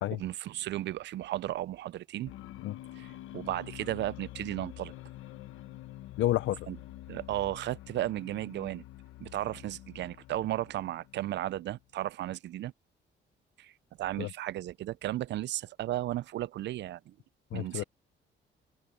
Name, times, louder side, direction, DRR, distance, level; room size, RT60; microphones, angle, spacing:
voice 1, 0.1-2.3 3.0-4.9 6.7-6.8 7.1-8.8 9.2-12.7 13.6-13.7 14.0-17.1 17.5-17.8, right 14 dB, 65° right, 0.4 m, -35 dB
sound 1, 2.3-11.9, left 14 dB, 90° left, 1.1 m, -47 dB
voice 2, 6.2-6.7 14.2-14.3 17.5-17.8, left 14 dB, 75° left, 0.6 m, -30 dB
cardioid pair, 90°, 20 cm